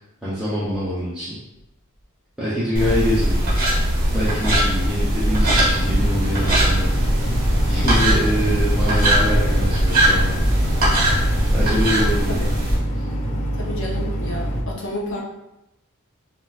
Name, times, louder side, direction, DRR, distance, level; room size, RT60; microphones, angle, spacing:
voice 1, 0.2-1.4 2.4-3.4 4.1-7.0 7.7-10.3 11.5-12.4 12.9-13.0, equal, 5° right, -12 dB, 0.7 m, -24 dB
sound 1, 2.7-12.8, right 1 dB, 40° right, 1.1 m, -20 dB
sound 2, 2.8-11.7, right 1 dB, 85° right, 0.6 m, -28 dB
sound 3, 5.2-14.6, right 1 dB, 35° left, 0.4 m, -25 dB
voice 2, 13.5-15.2, left 1 dB, 60° left, -2 dB, 0.7 m, -30 dB
3.7 x 2.5 x 2.4 m, 0.91 s
head